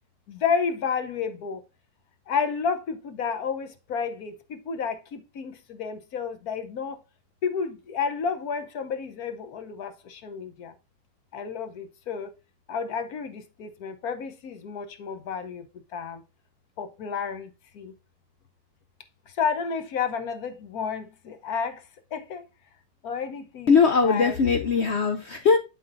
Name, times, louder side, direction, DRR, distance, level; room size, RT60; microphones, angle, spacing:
voice 1, 0.3-1.6 2.3-7.0 7.4-10.7 11.3-12.3 12.7-15.7 15.9-16.2 16.8-17.9 19.4-21.8 22.1-22.5 23.0-24.4, left 6 dB, 60° left, 1.2 m, -31 dB
voice 2, 23.7-25.6, left 5 dB, 85° left, 0.5 m, -20 dB
12.0 x 4.2 x 2.5 m
omnidirectional pair, 1.9 m